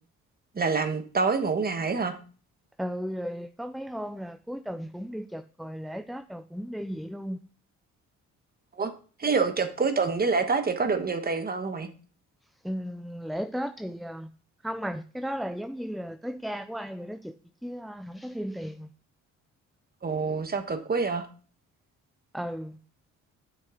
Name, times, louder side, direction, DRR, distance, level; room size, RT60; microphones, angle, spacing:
voice 1, 0.5-2.2 8.7-8.9 9.2-11.9 20.0-21.3, right 4 dB, 30° right, 1.3 m, -26 dB
voice 2, 2.8-7.4 12.6-14.3 14.6-17.3 17.6-18.9 22.3-22.8, equal, ahead, 0.3 m, -35 dB
8.6 x 6.4 x 3.8 m
cardioid pair, 90°, 30 cm